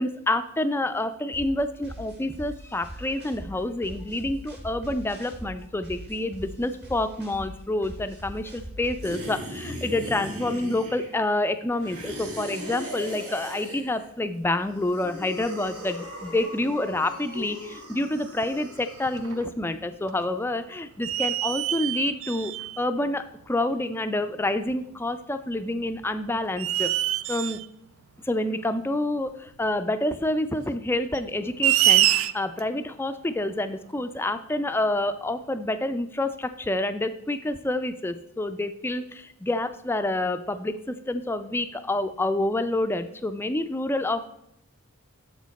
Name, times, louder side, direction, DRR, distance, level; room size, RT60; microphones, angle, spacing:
voice 1, 0.0-26.9 27.3-27.6 28.2-44.3, left 1 dB, 10° left, 9 dB, 0.3 m, -28 dB
sound 1, 1.3-9.3, equal, 50° right, 1.6 m, -41 dB
sound 2, 9.0-11.3 11.8-14.1 14.7-19.4, equal, 85° right, 1.8 m, -38 dB
sound 3, 18.4-18.5 19.0-19.7 20.1-20.2 21.0-22.8 23.8-23.9 25.8-26.0 26.6-27.7 29.5-29.6 31.1-32.6, right 13 dB, 65° right, 0.3 m, -24 dB
7.1 x 6.3 x 4.1 m, 0.80 s
head